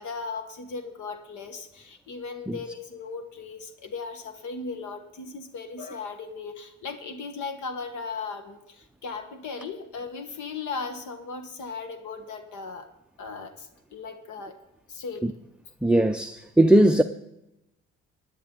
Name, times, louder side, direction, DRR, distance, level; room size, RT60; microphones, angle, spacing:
voice 1, 0.0-12.9 13.2-14.6 14.9-15.3, left 4 dB, 75° left, 1.4 m, -37 dB
voice 2, 15.8-17.0, right 1 dB, 5° right, 0.4 m, -19 dB
16.5 x 10.5 x 3.8 m
cardioid pair, 90°, 30 cm